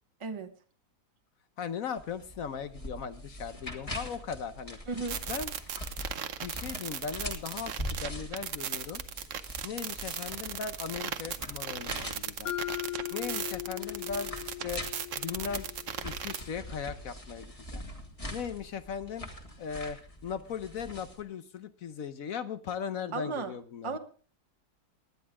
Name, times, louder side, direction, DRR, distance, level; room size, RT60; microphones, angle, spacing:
voice 1, 0.2-0.5 4.9-5.2 23.1-23.5 23.8-24.0, right 4 dB, 20° right, 7 dB, 1.0 m, -34 dB
voice 2, 1.6-4.8 5.3-5.5 6.4-9.0 9.6-12.5 13.1-14.8 15.2-15.7 16.0-17.8 18.3-19.3 19.6-24.0, left 7 dB, 60° left, 11 dB, 1.2 m, -38 dB
sound 1, 2.0-21.2, left 1 dB, 20° left, 1.9 m, -43 dB
sound 2, 5.1-16.4, right 8 dB, 55° right, 1.1 m, -37 dB
Mallet percussion, 12.5-16.5, left 16 dB, 90° left, 1.4 m, -39 dB
19.0 x 10.5 x 3.6 m, 0.41 s
omnidirectional pair, 1.8 m